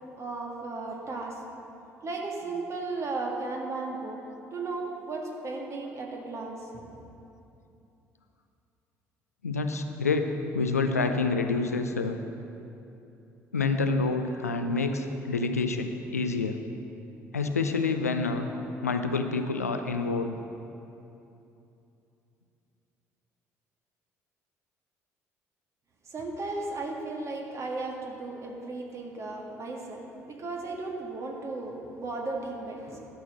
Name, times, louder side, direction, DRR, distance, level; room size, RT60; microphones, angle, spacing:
voice 1, 0.2-1.4 2.0-4.2 4.5-6.7 26.1-33.1, right 3 dB, 35° right, 0 dB, 1.7 m, -35 dB
voice 2, 9.4-10.3 10.5-12.2 13.5-16.6 17.3-18.5 18.8-20.4, left 4 dB, 85° left, 7 dB, 0.5 m, -27 dB
11.5 x 6.3 x 6.4 m, 2.8 s
figure-of-eight pair, 50°, 8 cm